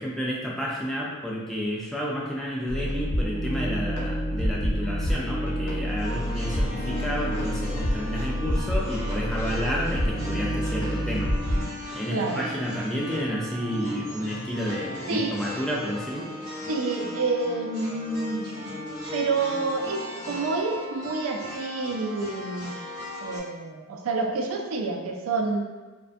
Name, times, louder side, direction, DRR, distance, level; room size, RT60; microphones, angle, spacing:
voice 1, 0.0-11.3 11.9-16.3, equal, ahead, -5 dB, 0.3 m, -30 dB
sound 1, 2.7-11.7, equal, 60° left, 0.5 m, -28 dB
sound 2, 6.0-23.4, left 1 dB, 20° left, 1.0 m, -37 dB
voice 2, 12.1-12.5 15.1-15.4 16.7-18.5 19.1-22.8 23.2-25.6, right 3 dB, 80° right, 2 dB, 0.3 m, -28 dB
2.4 x 2.1 x 2.4 m, 1.3 s
head